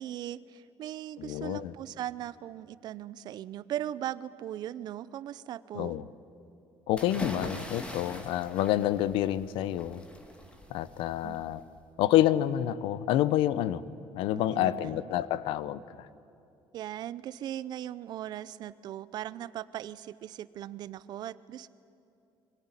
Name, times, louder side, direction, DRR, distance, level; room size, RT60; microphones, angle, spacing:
voice 1, 0.0-6.0 11.2-11.4 14.3-15.1 16.7-21.7, right 12 dB, 50° right, 17 dB, 0.6 m, -39 dB
voice 2, 1.2-1.7 5.7-6.0 6.9-10.0 10.7-11.6 12.0-13.8 14.1-16.1, left 13 dB, 90° left, 17 dB, 0.8 m, -28 dB
sound 1, 6.9-11.8, left 1 dB, 10° left, 2.1 m, -42 dB
24.0 x 18.5 x 9.9 m, 2.7 s
cardioid pair, 170°, 9 cm